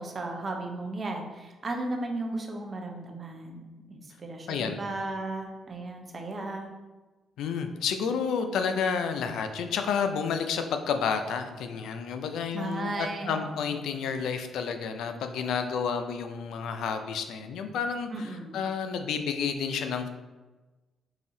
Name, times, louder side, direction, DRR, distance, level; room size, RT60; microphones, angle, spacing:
voice 1, 0.0-6.7 12.5-13.7 18.1-18.7, right 2 dB, 35° right, 2 dB, 0.7 m, -35 dB
voice 2, 4.5-4.8 7.4-20.1, left 6 dB, 80° left, 7 dB, 0.3 m, -30 dB
4.8 x 2.7 x 2.7 m, 1.2 s
cardioid pair, 90°, 0 cm